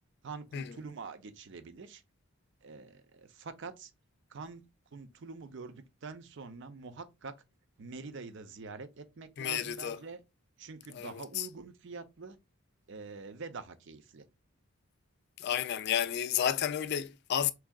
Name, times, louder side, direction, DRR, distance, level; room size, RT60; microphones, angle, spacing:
voice 1, 0.2-2.0 2.6-3.9 4.3-4.6 4.9-7.3 7.8-10.2 10.6-12.4 12.9-14.3, right 4 dB, 55° right, 0.5 m, -45 dB
voice 2, 9.4-10.0 10.9-11.5 15.4-17.5, left 9 dB, 50° left, 0.3 m, -31 dB
4.5 x 3.6 x 2.3 m
head